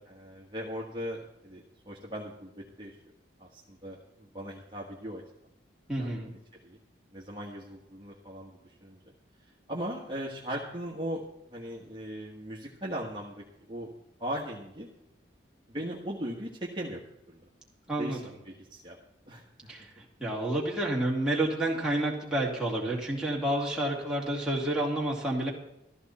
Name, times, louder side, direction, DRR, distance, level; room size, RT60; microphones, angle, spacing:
voice 1, 0.1-2.9 3.4-5.2 6.0-6.4 6.6-6.8 7.1-9.0 9.7-11.2 11.5-13.9 14.2-14.9 15.7-17.4 18.0-19.0 19.3-19.7, equal, 25° right, -4 dB, 1.6 m, -39 dB
voice 2, 5.9-6.3 17.9-18.2 19.7-19.9 20.2-25.5, right 1 dB, 5° right, -5 dB, 2.9 m, -29 dB
14.5 x 14.0 x 4.3 m, 0.84 s
head